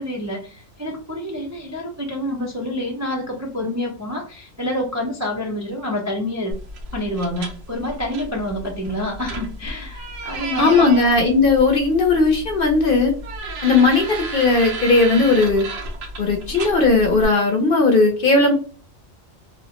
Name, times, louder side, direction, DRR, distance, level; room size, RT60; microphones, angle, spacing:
voice 1, 0.0-6.5 6.9-11.1, left 1 dB, 25° right, -3 dB, 0.3 m, -28 dB
sound 1, 6.5-17.3, right 2 dB, 90° right, 1.1 m, -33 dB
voice 2, 10.6-13.1 13.6-15.7 16.2-18.5, left 3 dB, 55° left, 3 dB, 0.7 m, -17 dB
3.0 x 2.0 x 2.8 m, 0.39 s
omnidirectional pair, 1.3 m